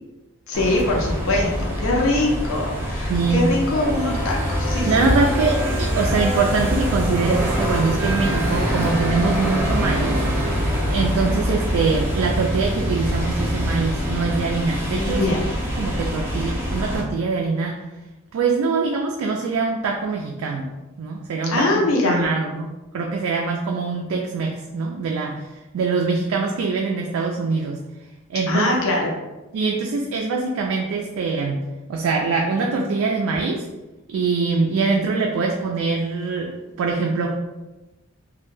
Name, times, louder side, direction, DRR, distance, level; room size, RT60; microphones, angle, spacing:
voice 1, 0.5-4.9 14.9-15.5 21.5-22.2 28.5-29.1, left 2 dB, 70° left, -1 dB, 0.5 m, -22 dB
sound 1, 0.5-17.0, equal, 10° right, 0.5 m, -24 dB
voice 2, 3.1-3.4 4.9-10.2 10.9-15.3 15.8-17.8 18.3-22.7 22.9-27.8 28.3-28.7 29.5-31.6 31.9-33.6 34.1-36.5 36.8-37.3, right 4 dB, 75° right, 1 dB, 0.3 m, -23 dB
2.2 x 2.1 x 3.0 m, 1.1 s
head